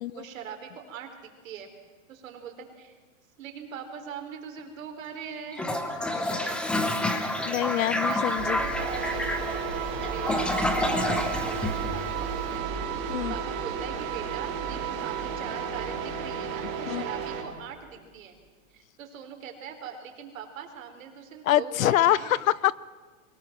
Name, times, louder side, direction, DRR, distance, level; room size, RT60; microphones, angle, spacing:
voice 1, 0.1-1.7 2.1-3.0 3.4-5.7 6.2-6.6 8.1-9.3 10.0-12.7 13.3-18.4 18.7-22.4, right 7 dB, 75° right, 4 dB, 4.3 m, -41 dB
Toilet flush, 5.5-12.5, left 1 dB, 5° left, 0.7 m, -29 dB
voice 2, 7.4-8.6 13.1-13.3 16.9-17.0 21.5-22.7, left 13 dB, 80° left, 21 dB, 0.8 m, -25 dB
sound 1, 8.4-17.9, right 2 dB, 20° right, 4.7 m, -38 dB
sound 2, 8.7-17.4, right 9 dB, 45° right, 4.1 m, -34 dB
23.0 x 18.0 x 7.5 m, 1.4 s
supercardioid pair, 170°, 40 cm